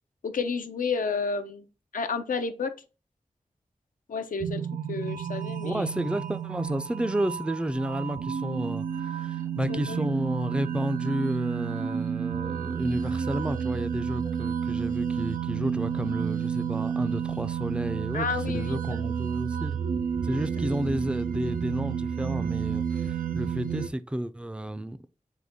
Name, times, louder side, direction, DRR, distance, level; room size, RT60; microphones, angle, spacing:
voice 1, 0.2-1.6 1.9-2.7 4.1-5.8 9.7-10.1 18.1-18.8, left 5 dB, 90° left, 0.5 m, -31 dB
sound 1, 4.4-23.9, right 8 dB, 85° right, 0.4 m, -31 dB
voice 2, 5.6-19.8 20.2-25.0, right 1 dB, 10° right, 0.3 m, -31 dB
5.0 x 2.2 x 3.5 m
wide cardioid pair, 95°, 14 cm